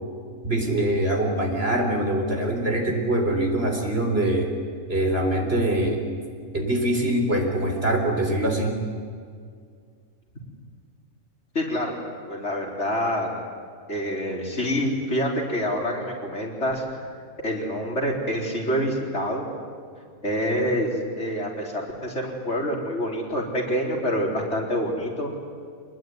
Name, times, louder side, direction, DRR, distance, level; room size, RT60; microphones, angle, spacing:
voice 1, 0.4-4.5 4.9-6.0 6.5-8.8, right 1 dB, 45° right, 2 dB, 4.3 m, -23 dB
voice 2, 11.5-12.0 12.3-13.3 13.9-16.8 17.4-19.5 20.2-25.3, equal, 55° left, -1 dB, 4.7 m, -26 dB
26.5 x 20.5 x 9.6 m, 2.1 s
omnidirectional pair, 1.4 m